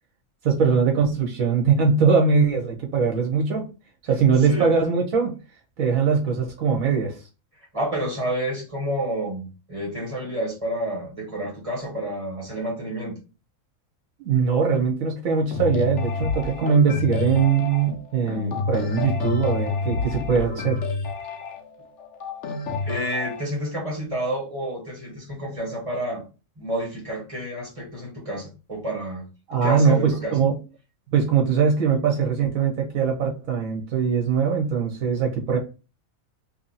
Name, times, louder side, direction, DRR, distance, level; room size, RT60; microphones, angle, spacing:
voice 1, 0.4-3.7 4.1-5.3 5.8-7.2 14.2-20.8 29.5-30.5 31.1-35.6, right 5 dB, 75° right, 1 dB, 1.3 m, -21 dB
voice 2, 7.7-13.2 22.8-26.2 26.6-29.2 29.6-30.4, right 1 dB, 25° right, -2 dB, 1.6 m, -29 dB
sound 1, 15.5-23.4, left 3 dB, 60° left, 1.0 m, -29 dB
3.0 x 2.7 x 4.0 m, 0.31 s
omnidirectional pair, 1.5 m